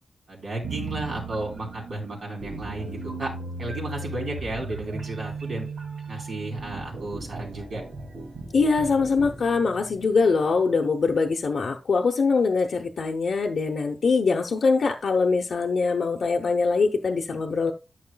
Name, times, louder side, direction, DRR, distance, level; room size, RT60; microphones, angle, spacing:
voice 1, 0.3-3.3 3.6-5.7 6.1-7.8, right 2 dB, 65° right, -1 dB, 3.9 m, -33 dB
sound 1, 0.6-10.8, right 3 dB, 85° right, 2.4 m, -37 dB
voice 2, 8.5-17.7, left 4 dB, 65° left, 1 dB, 0.7 m, -23 dB
12.5 x 6.5 x 2.3 m, 0.29 s
wide cardioid pair, 165°, 0 cm